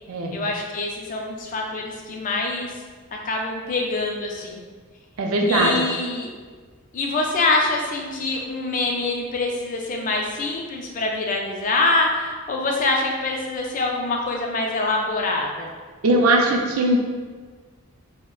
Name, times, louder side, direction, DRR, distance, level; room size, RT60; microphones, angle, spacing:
voice 1, 0.3-2.7 3.2-4.6 5.5-6.3 6.9-15.7, left 2 dB, 35° left, 0 dB, 0.3 m, -25 dB
voice 2, 5.2-5.7 16.0-17.0, right 1 dB, 75° right, 1 dB, 0.4 m, -19 dB
2.3 x 2.1 x 3.6 m, 1.5 s
head